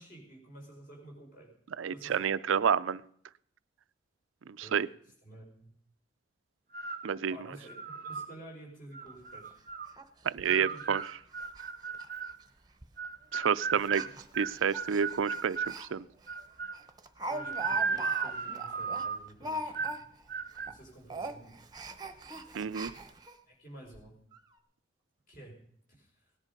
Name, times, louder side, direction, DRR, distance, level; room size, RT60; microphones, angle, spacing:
voice 1, 0.0-1.5 1.9-2.3 4.6-4.8 5.2-5.7 7.3-7.8 8.0-9.5 10.4-10.9 13.7-14.4 14.9-15.0 17.2-20.1 20.6-21.6 23.5-24.2 25.3-25.6 25.9-26.2, right 1 dB, 45° left, -1 dB, 5.2 m, -51 dB
voice 2, 1.8-3.0 4.5-4.9 7.0-7.4 10.2-11.0 13.3-14.0 14.4-16.0 22.5-22.9, right 7 dB, 85° right, 16 dB, 0.4 m, -29 dB
sound 1, 6.7-7.1 7.7-8.3 8.9-9.9 10.5-12.4 13.0-15.8 16.3-16.8 17.3-19.3 19.7-20.0 20.3-20.7, right 5 dB, 45° right, 0.7 m, -36 dB
Speech, 9.1-9.2 9.5-9.6 10.0-10.1 10.4-10.5 11.0-11.1 11.4-11.7 11.9-12.1 12.8-13.1 13.8-15.9 16.3-16.4 16.7-20.3 20.6-20.8 21.1-23.4 23.9-24.0 24.3-24.4, right 1 dB, 20° right, 0.9 m, -41 dB
17.5 x 10.5 x 5.3 m, 0.65 s
head